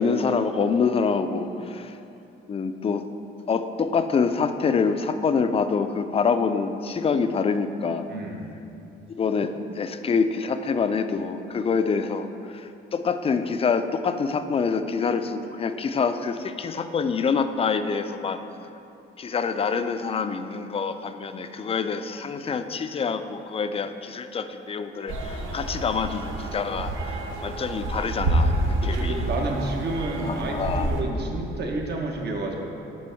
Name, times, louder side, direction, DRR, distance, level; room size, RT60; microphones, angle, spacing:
voice 1, 0.0-1.9 2.5-3.0 3.5-8.1 9.1-12.3 12.5-18.4 19.2-28.5 28.8-29.2 30.2-30.9, left 5 dB, 30° left, 9 dB, 0.3 m, -26 dB
voice 2, 8.1-8.5 28.8-32.6, right 2 dB, 55° right, 0 dB, 1.0 m, -30 dB
sound 1, 25.1-31.0, right 1 dB, 85° right, 0.8 m, -28 dB
6.1 x 5.5 x 4.4 m, 2.8 s
cardioid pair, 90°, 20 cm